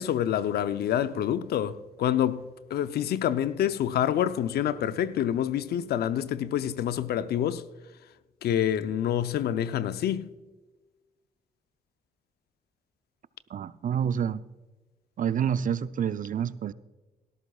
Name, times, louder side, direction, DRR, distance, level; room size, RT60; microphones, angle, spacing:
voice 1, 0.0-7.6 8.4-10.3, left 10 dB, 75° left, 0.6 m, -27 dB
voice 2, 13.5-14.4 15.2-16.7, right 8 dB, 55° right, 0.5 m, -28 dB
17.5 x 13.5 x 2.4 m
supercardioid pair, 50°, 17 cm